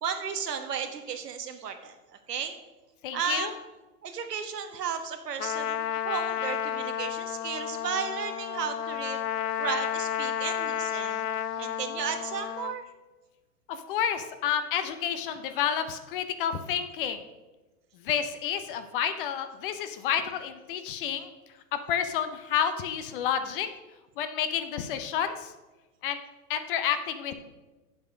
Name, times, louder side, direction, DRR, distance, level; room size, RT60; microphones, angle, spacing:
voice 1, 0.0-2.5 3.1-3.5 4.0-9.3 9.6-11.3 11.6-12.8, right 7 dB, 75° right, 6 dB, 1.5 m, -34 dB
voice 2, 3.0-3.5 13.7-17.2 18.0-21.3 21.7-23.7 24.2-25.5 26.0-26.2 26.5-27.3, left 8 dB, 35° left, 9 dB, 0.7 m, -30 dB
Trumpet, 5.4-12.7, left 10 dB, 75° left, 0.7 m, -32 dB
8.4 x 7.3 x 5.2 m, 1.1 s
hypercardioid pair, 130°, 48 cm